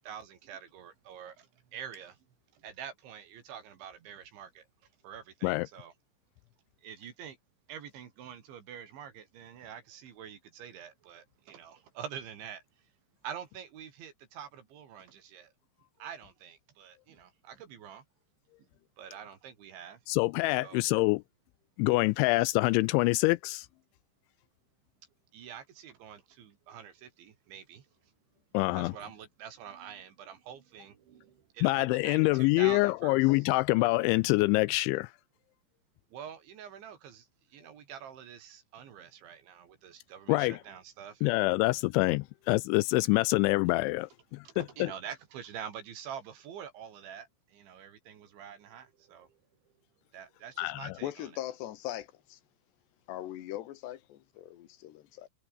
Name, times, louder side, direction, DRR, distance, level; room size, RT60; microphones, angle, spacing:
voice 1, 0.0-2.2 2.5-4.7 5.0-5.9 6.8-7.4 7.7-12.9 13.2-15.5 16.0-18.1 19.0-20.0 20.6-20.8 25.3-27.9 28.8-33.5 36.1-41.4 44.5-49.4 50.1-51.3, right 8 dB, 70° right, 5.2 m, -46 dB
voice 2, 20.1-21.2 21.8-23.7 28.5-28.9 31.6-35.1 40.3-40.6 41.2-44.4 44.8-44.9 50.6-50.9, left 22 dB, 85° left, 2.8 m, -26 dB
voice 3, 51.0-52.4 53.1-55.3, left 13 dB, 70° left, 3.5 m, -40 dB
omnidirectional pair, 5.6 m